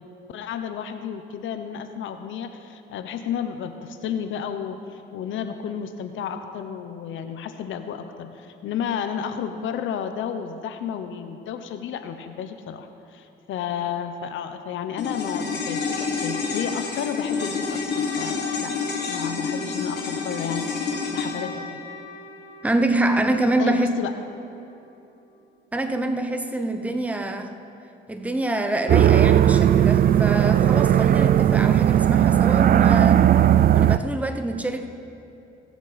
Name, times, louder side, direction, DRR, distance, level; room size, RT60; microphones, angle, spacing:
voice 1, 0.0-17.8 18.2-18.7 19.1-21.7 23.6-24.1, left 8 dB, 80° left, 0.8 m, -32 dB
sound 1, 15.0-23.5 23.7-23.8, left 4 dB, 55° left, 1.9 m, -29 dB
voice 2, 22.6-23.9 25.7-27.5 28.1-33.3 33.7-34.9, right 2 dB, 5° right, 0.8 m, -25 dB
sound 2, 28.9-34.0, right 10 dB, 45° right, 0.4 m, -17 dB
21.5 x 7.2 x 4.1 m
cardioid pair, 90°, 20 cm